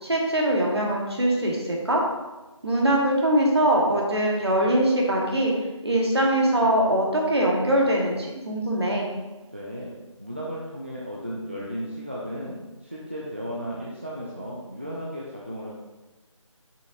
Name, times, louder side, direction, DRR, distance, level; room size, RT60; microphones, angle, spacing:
voice 1, 0.0-2.0 2.6-5.5 5.8-9.2, right 1 dB, 55° right, -2 dB, 1.4 m, -22 dB
voice 2, 9.5-9.9 10.2-15.8, equal, 25° right, -6 dB, 0.5 m, -35 dB
6.6 x 5.6 x 2.6 m, 1.1 s
figure-of-eight pair, 165°, 17 cm